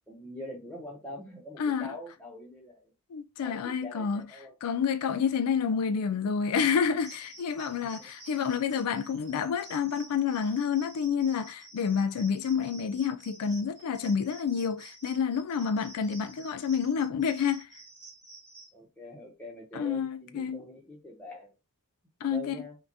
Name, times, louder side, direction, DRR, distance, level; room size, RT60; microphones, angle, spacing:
voice 1, 0.1-2.9 3.4-4.8 18.7-21.5 22.2-22.8, left 1 dB, 5° left, 0.8 m, -44 dB
voice 2, 1.6-1.9 3.1-4.2 4.6-17.8 19.7-20.6 22.2-22.6, left 6 dB, 90° left, 0.4 m, -29 dB
sound 1, 7.0-18.7, right 2 dB, 15° right, 2.0 m, -51 dB
5.5 x 2.2 x 2.7 m
head